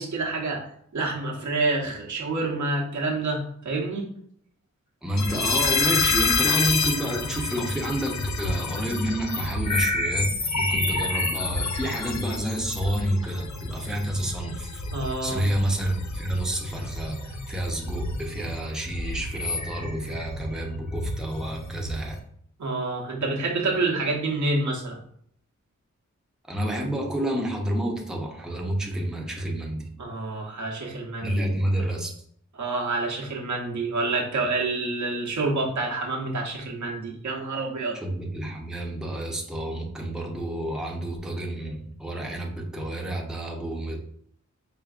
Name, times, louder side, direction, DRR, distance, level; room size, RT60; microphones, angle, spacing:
voice 1, 0.0-4.1 14.9-15.5 22.6-25.0 30.0-31.4 32.6-38.0, right 3 dB, 80° right, -1 dB, 0.9 m, -28 dB
voice 2, 5.0-10.3 10.6-14.8 15.2-22.2 26.5-29.9 31.2-32.1 37.9-44.1, right 1 dB, ahead, 0 dB, 0.6 m, -29 dB
sound 1, 5.2-22.2, left 3 dB, 70° left, 0.6 m, -29 dB
4.9 x 2.5 x 2.4 m, 0.66 s
wide cardioid pair, 80°, 29 cm